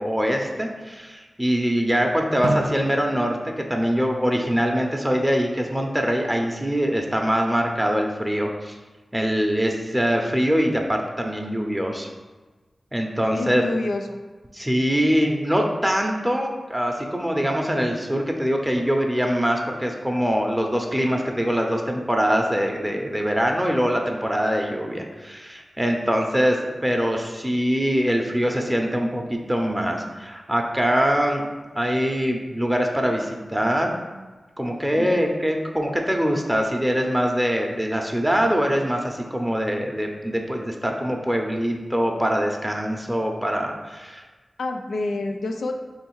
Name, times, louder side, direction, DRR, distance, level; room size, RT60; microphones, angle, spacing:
voice 1, 0.0-8.8 9.1-12.1 12.9-13.6 14.5-31.5 31.7-34.0 34.6-44.2, equal, 10° right, 2 dB, 0.7 m, -23 dB
Drum, 2.4-5.1, right 2 dB, 70° right, 0.4 m, -32 dB
voice 2, 13.3-14.2 34.9-35.2 44.6-45.7, left 2 dB, 90° left, 4 dB, 0.4 m, -28 dB
3.4 x 3.2 x 4.6 m, 1.3 s
cardioid pair, 40°, 0 cm